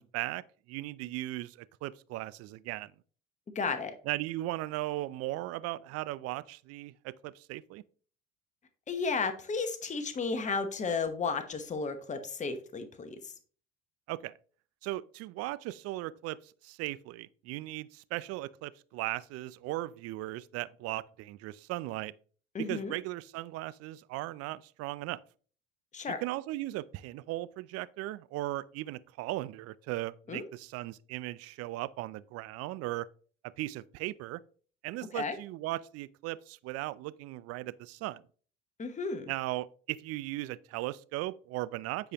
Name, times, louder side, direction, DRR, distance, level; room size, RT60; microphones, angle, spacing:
voice 1, 0.0-2.9 4.1-7.8 14.1-14.3 14.8-22.1 22.7-25.2 26.2-33.1 33.6-34.4 34.8-38.2 39.3-42.1, right 17 dB, 55° right, 0.5 m, -37 dB
voice 2, 3.5-3.9 8.9-13.3 22.5-22.9 25.9-26.2 30.3-30.4 35.1-35.4 38.8-39.3, left 4 dB, 25° left, 1.0 m, -33 dB
8.9 x 4.8 x 2.9 m
hypercardioid pair, 75°, 29 cm